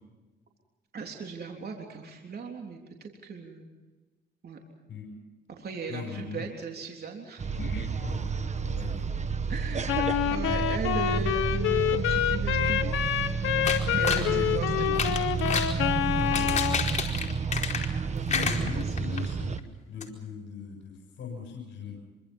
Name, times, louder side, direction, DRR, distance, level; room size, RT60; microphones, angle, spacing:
voice 1, 0.9-3.7 4.4-4.6 5.5-7.5 9.5-9.9 10.3-13.0 13.4-15.2 18.1-19.1, right 5 dB, 50° right, 1 dB, 3.6 m, -38 dB
voice 2, 5.9-6.4 7.6-9.1 9.5-9.8 14.1-14.7 16.1-17.0 18.2-19.6 19.9-22.0, left 6 dB, 65° left, 0 dB, 7.2 m, -40 dB
sound 1, 7.4-19.6, right 5 dB, 35° right, 1.5 m, -30 dB
Wind instrument woodwind instrument, 9.9-16.8, left 11 dB, 90° left, 1.4 m, -27 dB
sound 2, 13.7-14.3 14.9-15.8 16.2-18.0 18.3-19.2 19.6-19.7 20.0-20.1, left 5 dB, 35° left, 4.7 m, -30 dB
26.5 x 25.0 x 5.6 m, 1.2 s
cardioid pair, 90°, 20 cm